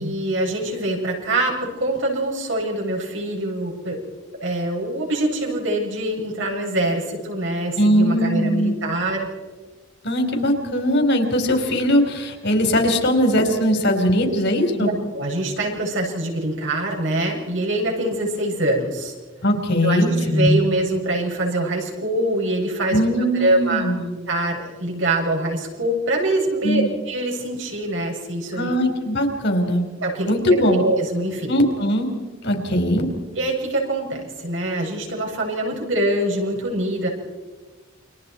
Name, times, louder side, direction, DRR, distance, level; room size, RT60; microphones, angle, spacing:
voice 1, 0.0-4.0 4.4-9.3 14.2-14.4 14.7-19.1 19.8-28.8 30.0-31.5 33.3-37.1, right 1 dB, 70° right, -1 dB, 7.2 m, -24 dB
voice 2, 7.7-8.8 10.0-14.9 19.4-20.5 22.9-24.1 26.6-26.9 28.5-29.8 30.3-30.8 31.5-32.1 32.4-33.1, equal, 60° left, 4 dB, 4.6 m, -20 dB
29.0 x 25.5 x 4.7 m, 1.3 s
head